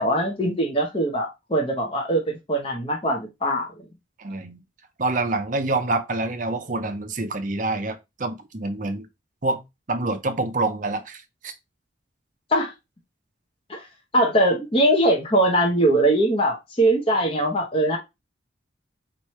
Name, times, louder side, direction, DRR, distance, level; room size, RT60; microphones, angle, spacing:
voice 1, 0.0-3.7 12.5-12.7 13.7-13.9 14.1-18.0, right 1 dB, 30° left, 0.9 m, -21 dB
voice 2, 4.2-4.6 5.0-9.1 9.4-9.6 9.9-11.5, right 2 dB, 40° right, 0.6 m, -26 dB
4.3 x 3.1 x 3.1 m
head